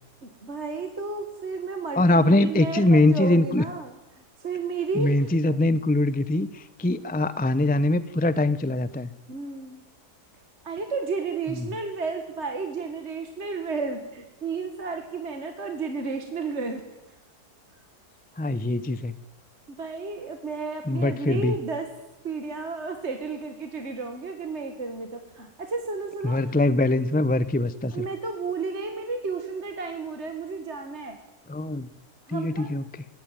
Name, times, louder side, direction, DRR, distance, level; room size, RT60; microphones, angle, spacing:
voice 1, 0.2-5.3 9.3-9.8 10.6-16.8 19.7-21.9 22.2-26.5 27.9-31.2 32.3-32.7, right 4 dB, 45° right, 5 dB, 2.0 m, -32 dB
voice 2, 1.9-3.6 4.9-9.1 18.4-19.2 20.9-21.6 26.2-28.0 31.5-31.9 32.3-32.8, left 2 dB, 15° left, 15 dB, 0.4 m, -22 dB
23.0 x 18.0 x 9.1 m, 0.97 s
omnidirectional pair, 1.7 m